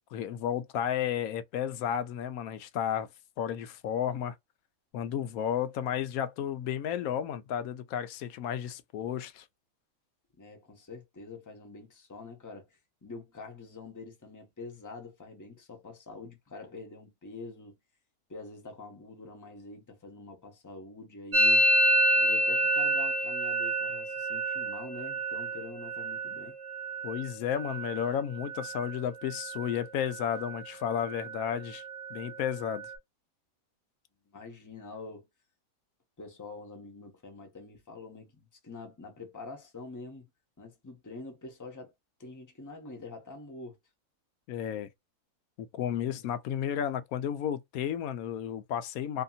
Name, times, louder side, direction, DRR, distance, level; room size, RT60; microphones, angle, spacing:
voice 1, 0.0-3.1 3.4-4.3 4.9-9.4 27.0-31.8 32.1-32.9 44.5-44.9 45.6-49.2, left 9 dB, 90° left, 1.0 m, -32 dB
voice 2, 10.4-17.8 18.3-21.6 22.2-26.5 34.3-35.3 36.2-40.2 40.6-41.9 42.2-43.8 46.1-46.2, left 3 dB, 15° left, 0.8 m, -46 dB
Musical instrument, 21.3-29.0 29.2-29.8 30.1-30.7 30.9-32.9, right 1 dB, 45° right, 1.0 m, -29 dB
2.8 x 2.7 x 2.3 m
omnidirectional pair, 1.5 m